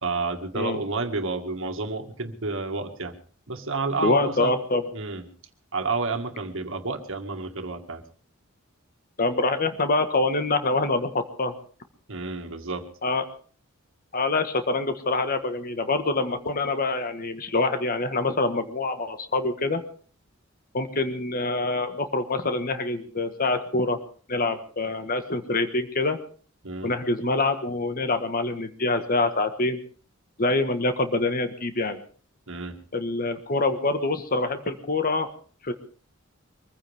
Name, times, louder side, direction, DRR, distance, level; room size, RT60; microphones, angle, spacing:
voice 1, 0.0-3.1 3.5-4.5 4.9-5.2 5.7-8.0 12.1-12.9 26.6-26.9 32.5-32.8, right 3 dB, 65° right, 5 dB, 2.0 m, -30 dB
voice 2, 4.0-4.9 9.2-11.5 13.0-13.2 14.1-19.8 20.7-24.0 24.3-26.2 26.8-29.8 30.4-32.0 32.9-35.3 35.6-35.7, left 2 dB, 40° left, 8 dB, 1.5 m, -25 dB
24.0 x 15.0 x 3.6 m, 0.42 s
head